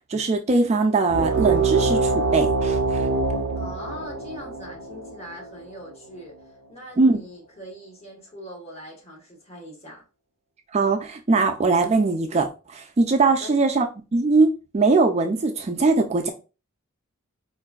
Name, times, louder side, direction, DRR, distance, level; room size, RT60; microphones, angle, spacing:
voice 1, 0.1-3.1 7.0-7.2 10.7-13.9 14.1-14.5 14.7-16.3, right 3 dB, 30° right, 0.3 m, -21 dB
sound 1, 1.1-6.2, right 4 dB, 80° right, 0.5 m, -24 dB
voice 2, 3.5-10.0 13.2-13.5, equal, 30° left, 1.1 m, -41 dB
4.5 x 2.5 x 2.3 m
head